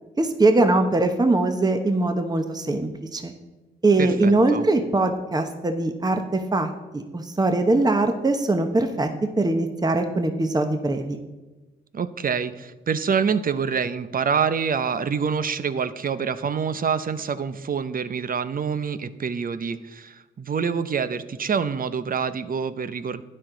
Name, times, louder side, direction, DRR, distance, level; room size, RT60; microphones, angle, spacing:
voice 1, 0.2-3.3 3.8-9.1 9.4-11.2, right 2 dB, 20° right, 6 dB, 1.0 m, -22 dB
voice 2, 4.0-4.7 11.9-23.2, right 6 dB, 50° right, 13 dB, 0.7 m, -26 dB
12.0 x 9.7 x 3.9 m, 1.1 s
supercardioid pair, 55°, 19 cm